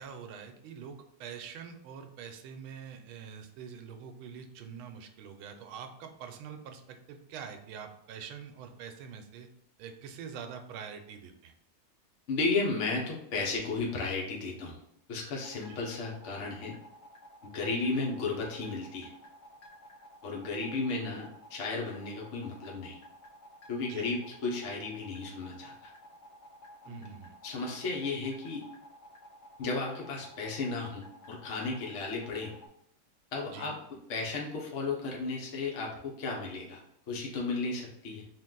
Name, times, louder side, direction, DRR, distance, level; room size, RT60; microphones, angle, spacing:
voice 1, 0.0-9.5 9.8-11.5 15.7-15.8 23.9-24.1 26.9-27.3 33.5-33.7, right 7 dB, 85° right, 6 dB, 1.4 m, -45 dB
voice 2, 12.3-14.8 15.1-16.7 17.4-19.1 20.2-23.0 23.7-25.9 26.9-27.1 27.4-28.7 29.6-32.5 33.3-33.7 34.1-36.8 37.1-38.2, left 3 dB, 50° left, -2 dB, 1.0 m, -34 dB
sound 1, 15.4-32.7, left 1 dB, 85° left, 0.6 m, -53 dB
3.9 x 2.6 x 3.7 m, 0.74 s
omnidirectional pair, 2.2 m